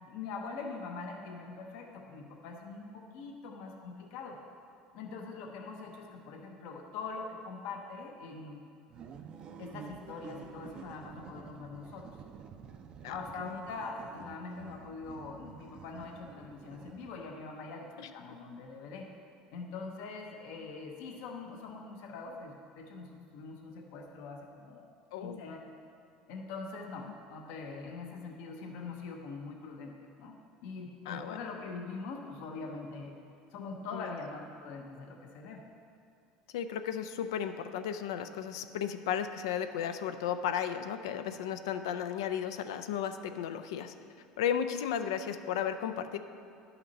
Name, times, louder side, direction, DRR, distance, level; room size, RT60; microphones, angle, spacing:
voice 1, 0.0-4.4 4.9-8.7 9.6-12.1 13.1-19.1 19.5-24.9 25.2-25.6 26.3-30.4 30.6-33.1 33.5-35.6, left 4 dB, 75° left, 2 dB, 0.9 m, -43 dB
sound 1, 8.9-17.4, right 6 dB, 40° right, 0.5 m, -50 dB
voice 2, 25.1-25.4 31.1-31.4 33.9-34.1 36.5-43.9 44.4-46.2, left 8 dB, 90° left, 9 dB, 0.4 m, -34 dB
11.0 x 5.8 x 4.0 m, 2.4 s
supercardioid pair, 110°, 2 cm